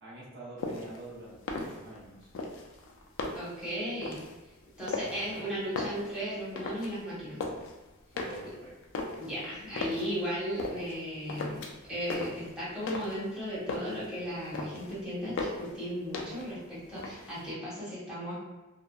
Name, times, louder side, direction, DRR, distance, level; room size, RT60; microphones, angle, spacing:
voice 1, 0.0-2.3 3.6-3.7 4.9-5.5 8.1-9.2, right 1 dB, 55° right, -7 dB, 0.7 m, -47 dB
sound 1, 0.6-1.0 1.4-2.0 2.3-3.6 4.0-4.4 4.8-5.4 5.7-6.9 7.2-7.7 8.2-10.1 10.6-11.0 11.3-11.9 12.1-13.3 13.5-14.1 14.4-14.9 15.4-15.8 16.1-16.6 16.9-17.5, left 3 dB, 60° left, 0.4 m, -37 dB
voice 2, 3.3-4.2 4.8-7.4 9.2-11.6 11.9-18.3, equal, 5° right, -11 dB, 1.0 m, -36 dB
2.6 x 2.2 x 2.3 m, 1.1 s
head